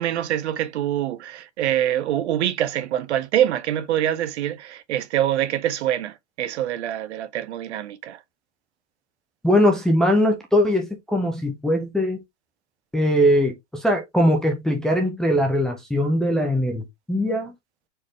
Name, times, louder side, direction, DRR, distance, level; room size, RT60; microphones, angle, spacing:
voice 1, 0.0-8.2, right 11 dB, 65° right, 0.8 m, -25 dB
voice 2, 9.4-12.2 12.9-17.5, equal, ahead, 0.5 m, -21 dB
4.4 x 3.5 x 3.1 m
hypercardioid pair, 140°, 37 cm